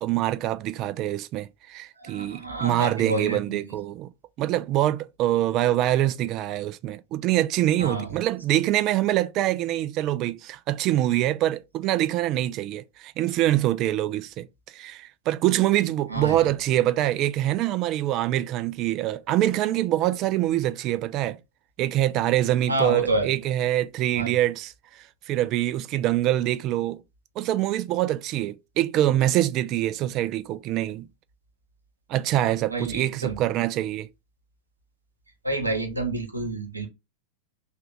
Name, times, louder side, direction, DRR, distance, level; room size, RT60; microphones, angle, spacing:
voice 1, 0.0-4.1 4.4-14.5 14.7-21.4 21.8-24.7 25.3-27.0 27.4-31.1 32.1-34.1, right 13 dB, 35° right, 0.3 m, -25 dB
voice 2, 2.0-3.8 7.8-8.1 16.1-16.5 22.7-23.3 24.1-24.4 32.7-33.4 35.4-36.9, right 2 dB, 85° right, 0.9 m, -29 dB
3.3 x 2.3 x 3.5 m
figure-of-eight pair, 90°, 0 cm